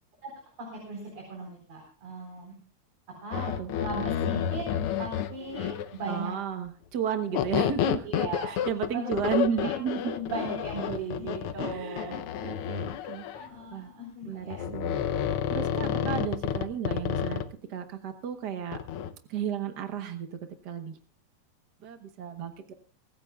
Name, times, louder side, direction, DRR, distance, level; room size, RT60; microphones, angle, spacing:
voice 1, 0.6-2.5 3.2-4.7 5.0-6.3 8.0-8.6 8.9-9.3 9.6-9.8 10.0-12.2 13.3-14.7 15.8-16.2, right 2 dB, 55° right, 0 dB, 5.3 m, -37 dB
sound 1, 3.3-6.0 7.3-13.5 14.5-17.5 18.7-19.1, left 9 dB, 80° left, 1.2 m, -30 dB
voice 2, 6.0-8.1 8.4-10.1 11.6-13.9 14.2-15.0 15.5-17.4 17.7-18.8 19.3-20.4 20.6-21.0 21.8-22.7, right 8 dB, 75° right, 7 dB, 0.9 m, -33 dB
24.0 x 14.5 x 2.3 m, 0.39 s
omnidirectional pair, 3.4 m